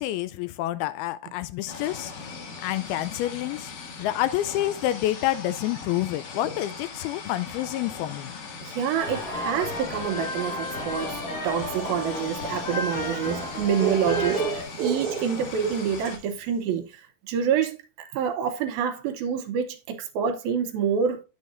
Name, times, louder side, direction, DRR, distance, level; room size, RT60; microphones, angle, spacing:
voice 1, 0.0-2.1 2.6-3.7 4.0-8.4, left 14 dB, 80° left, 2.3 m, -28 dB
sound 1, 1.7-16.2, left 4 dB, 60° left, 3.0 m, -40 dB
voice 2, 8.6-21.2, right 7 dB, 75° right, 2.4 m, -27 dB
sound 2, 9.0-14.6, left 2 dB, 35° left, 1.4 m, -33 dB
sound 3, 11.8-16.3, right 8 dB, 55° right, 2.3 m, -32 dB
9.6 x 7.1 x 2.5 m
omnidirectional pair, 4.6 m